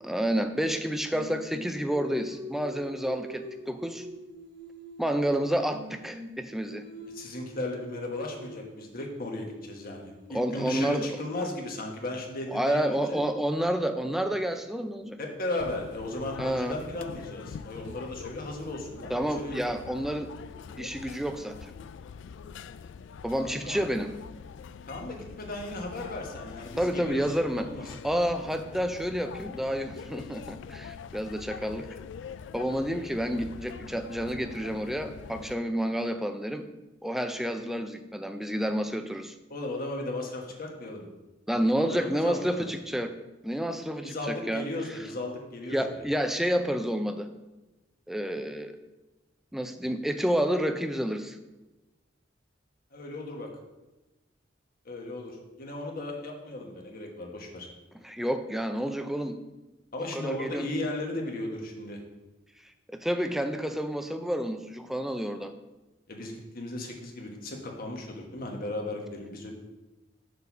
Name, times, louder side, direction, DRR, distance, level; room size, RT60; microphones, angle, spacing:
voice 1, 0.0-4.1 5.0-6.8 10.3-11.1 11.4-11.5 12.5-15.2 16.4-16.8 19.1-20.3 20.8-21.7 23.2-24.1 26.8-31.9 32.5-36.6 37.0-39.3 41.5-43.1 43.4-44.6 45.7-47.3 48.1-48.7 49.5-51.4 58.0-59.4 60.1-60.7 62.9-65.5, equal, ahead, 8 dB, 0.4 m, -29 dB
Singing, 1.1-5.4 5.7-11.7, left 1 dB, 50° right, 1.4 m, -45 dB
voice 2, 7.1-13.2 15.2-19.6 23.4-23.8 24.9-27.3 27.5-27.8 39.5-41.1 41.8-42.7 44.0-46.0 52.9-53.5 54.8-57.7 59.9-62.0 66.1-69.5, left 2 dB, 50° left, 1 dB, 1.3 m, -36 dB
sound 1, 15.6-35.5, left 6 dB, 70° left, 0.3 m, -44 dB
6.6 x 4.1 x 5.9 m, 1.1 s
head